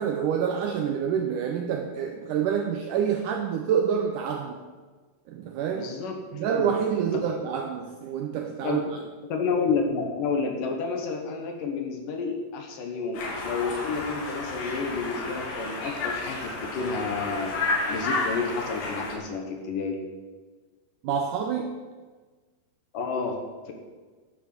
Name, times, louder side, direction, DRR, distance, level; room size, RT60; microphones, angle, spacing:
voice 1, 0.0-4.6 5.3-5.9 6.3-8.8 21.0-21.8, right 7 dB, 85° right, 5 dB, 1.8 m, -27 dB
voice 2, 5.7-6.7 7.1-7.2 8.6-8.9 9.3-17.5 17.9-20.0 22.9-23.7, left 4 dB, 65° left, 3 dB, 2.6 m, -30 dB
Conversation, 13.1-19.1, left 3 dB, 80° left, 4.4 m, -31 dB
10.5 x 6.9 x 7.7 m, 1.4 s
omnidirectional pair, 4.5 m